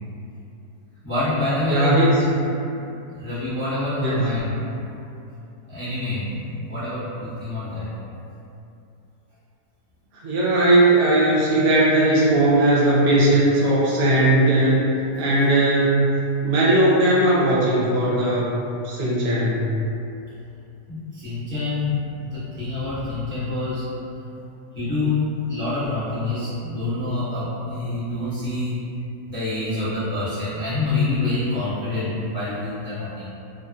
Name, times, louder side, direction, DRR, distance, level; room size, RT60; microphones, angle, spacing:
voice 1, 1.0-2.1 2.6-2.9 3.1-5.0 5.7-7.9 10.2-10.3 18.1-18.2 20.9-24.2 24.7-28.8 29.3-33.3, left 2 dB, 15° left, -14 dB, 0.3 m, -27 dB
voice 2, 1.7-2.2 4.0-4.1 10.2-14.8 15.2-16.1 16.4-19.6, right 1 dB, 70° right, -7 dB, 1.0 m, -18 dB
2.7 x 2.5 x 2.2 m, 2.7 s
omnidirectional pair, 1.7 m